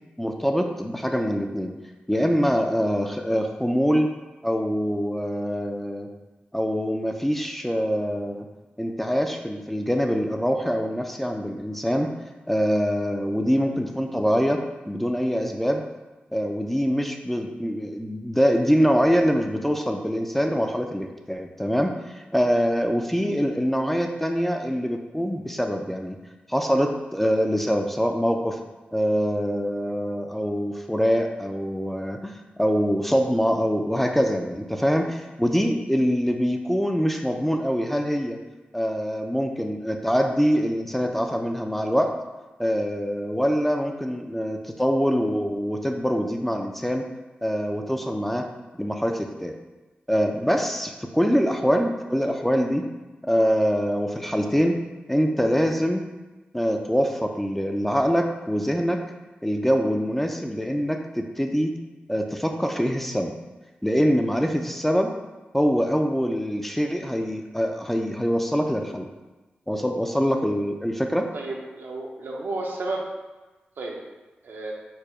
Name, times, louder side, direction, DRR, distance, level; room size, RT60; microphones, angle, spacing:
voice 1, 0.2-1.7 2.1-4.1 4.4-6.1 6.5-8.5 8.8-12.1 12.5-15.8 16.3-26.2 26.5-28.6 28.9-38.4 38.7-42.1 42.6-47.1 47.4-48.5 48.8-49.5 50.1-52.9 53.2-54.8 55.1-56.1 56.5-59.0 59.4-61.7 62.1-63.3 63.8-65.1 65.5-69.1 69.7-71.3, equal, 5° left, 3 dB, 0.4 m, -24 dB
voice 2, 71.3-73.0 73.8-74.0 74.4-74.7, right 2 dB, 75° right, -1 dB, 0.8 m, -32 dB
4.7 x 2.2 x 4.8 m, 1.1 s
cardioid pair, 55°, 4 cm